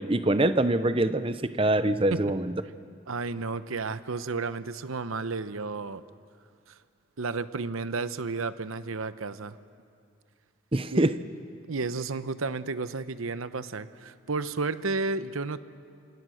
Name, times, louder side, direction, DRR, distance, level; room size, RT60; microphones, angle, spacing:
voice 1, 0.0-2.5 10.7-11.1, right 1 dB, 25° right, 12 dB, 0.7 m, -24 dB
voice 2, 3.1-6.0 7.2-9.6 10.9-11.1 11.7-15.6, right 3 dB, 85° right, 13 dB, 0.9 m, -32 dB
29.0 x 26.0 x 6.4 m, 2.4 s
head